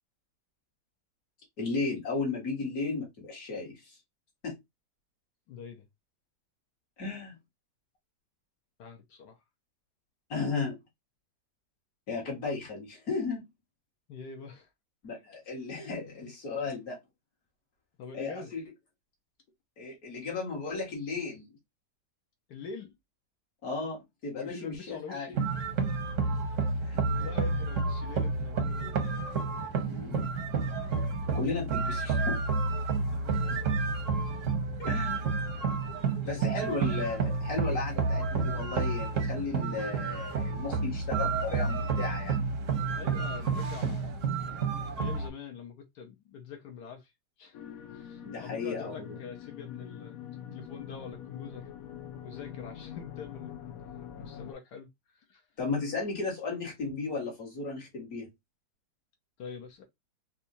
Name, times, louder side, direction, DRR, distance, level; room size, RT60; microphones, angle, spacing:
voice 1, 1.6-4.0 4.4-4.6 7.0-7.4 10.3-10.8 12.1-13.5 15.0-17.0 18.1-18.6 19.8-21.5 23.6-25.3 26.8-27.0 29.8-30.2 31.3-32.4 34.8-35.3 36.2-42.4 48.2-49.2 55.6-58.3, left 4 dB, 50° left, 2.0 m, -35 dB
voice 2, 5.5-5.9 8.8-9.4 14.1-14.7 18.0-18.5 22.5-23.0 24.3-25.4 27.1-28.9 33.1-33.7 36.2-36.5 42.9-44.1 44.8-47.1 47.4-47.6 47.9-51.7 52.2-53.5 54.2-54.9 55.1-55.4 59.4-59.9, left 6 dB, 65° left, 1.3 m, -45 dB
sound 1, 25.3-45.3, right 4 dB, 55° right, 0.9 m, -30 dB
sound 2, 47.5-54.5, left 9 dB, 80° left, 0.7 m, -44 dB
4.2 x 2.3 x 2.7 m
omnidirectional pair, 2.1 m